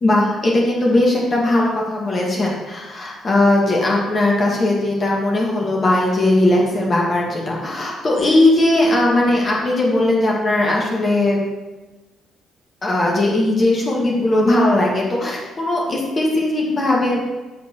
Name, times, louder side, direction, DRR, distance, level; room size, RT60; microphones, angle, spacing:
voice 1, 0.0-11.4 12.8-17.2, left 1 dB, 35° left, -2 dB, 2.3 m, -18 dB
7.4 x 6.2 x 6.3 m, 1.2 s
figure-of-eight pair, 45°, 0 cm